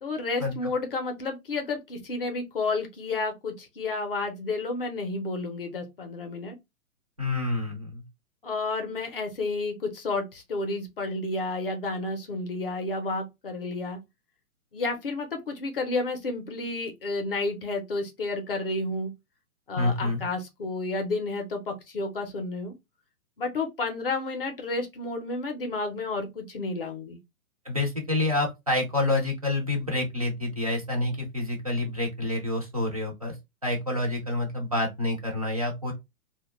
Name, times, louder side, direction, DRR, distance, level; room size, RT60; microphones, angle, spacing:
voice 1, 0.0-6.5 8.4-14.0 14.7-19.1 19.7-22.7 23.4-27.2, left 3 dB, 40° left, 0.5 m, -31 dB
voice 2, 7.2-8.0 19.8-20.2 27.7-33.3 33.6-35.9, left 2 dB, 25° right, 0.4 m, -28 dB
2.5 x 2.1 x 2.9 m
hypercardioid pair, 175°, 44 cm